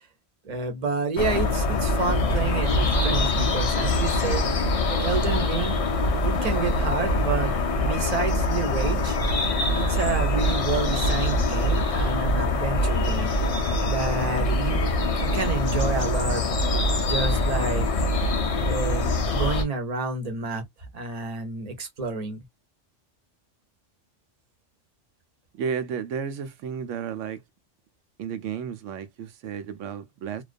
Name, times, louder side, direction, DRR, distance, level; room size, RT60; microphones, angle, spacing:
voice 1, 0.4-4.6 4.9-5.8 6.2-7.5 7.8-9.2 9.7-13.3 13.8-14.8 15.2-16.4 17.0-17.9 18.6-20.6 20.9-22.4, right 4 dB, 40° right, 0.8 m, -29 dB
sound 1, 1.2-19.6, left 1 dB, 50° left, 0.4 m, -24 dB
voice 2, 25.6-27.4 28.2-30.4, right 7 dB, 85° right, 0.9 m, -32 dB
2.3 x 2.2 x 2.4 m
omnidirectional pair, 1.2 m